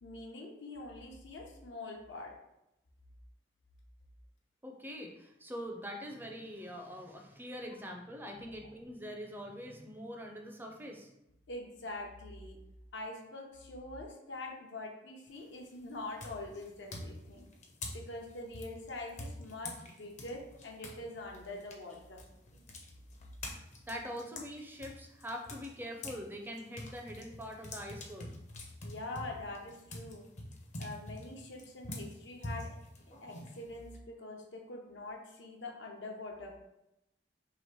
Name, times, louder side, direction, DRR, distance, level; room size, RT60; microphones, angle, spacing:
voice 1, 0.0-2.4 8.4-8.6 11.5-12.6 12.9-17.5 17.9-22.2 28.8-30.2 30.8-32.8 33.2-36.6, left 2 dB, 85° left, 1 dB, 0.8 m, -44 dB
voice 2, 4.6-11.1 23.9-28.3, equal, 10° right, 2 dB, 0.4 m, -43 dB
sound 1, 15.3-15.7 16.2-21.0 21.3-26.2 26.6-34.0, left 2 dB, 40° left, 0.6 m, -45 dB
3.0 x 2.9 x 4.5 m, 0.88 s
head